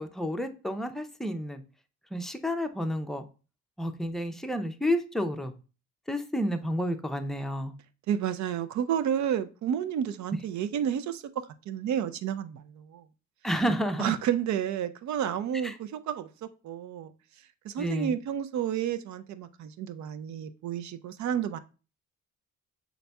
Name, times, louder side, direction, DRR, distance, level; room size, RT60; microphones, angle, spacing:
voice 1, 0.0-1.6 2.1-3.2 3.8-5.5 6.1-7.7 13.4-14.1 15.6-15.8 17.8-18.2, equal, ahead, 0.5 m, -30 dB
voice 2, 8.1-11.2 11.7-13.0 14.0-16.3 16.6-17.1 17.6-21.6, right 9 dB, 70° right, 0.5 m, -30 dB
5.9 x 4.0 x 2.2 m
cardioid pair, 90°, 30 cm